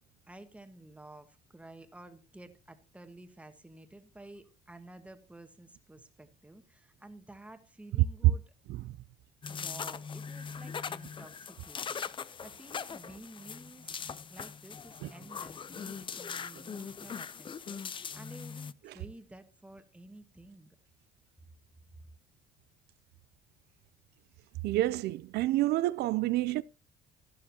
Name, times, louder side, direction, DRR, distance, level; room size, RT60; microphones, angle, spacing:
voice 1, 0.3-8.4 9.5-20.7, right 1 dB, 5° right, 1.4 m, -52 dB
sound 1, 9.4-18.7, left 6 dB, 30° left, 0.5 m, -41 dB
voice 2, 24.6-26.6, right 16 dB, 75° right, 0.4 m, -29 dB
12.5 x 12.0 x 2.8 m
cardioid pair, 110°, 17 cm